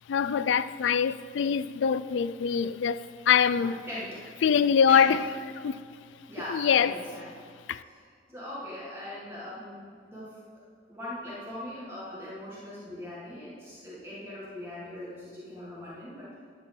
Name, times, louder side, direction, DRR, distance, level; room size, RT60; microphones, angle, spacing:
voice 1, 0.1-3.8 4.4-5.2 5.6-5.8 6.5-6.9 7.7-7.8, left 7 dB, 70° left, 0.3 m, -24 dB
voice 2, 3.5-4.2 4.9-5.3 6.3-7.3 7.8-10.4 10.9-16.4, left 1 dB, 15° right, 1.8 m, -40 dB
11.0 x 4.6 x 7.6 m
head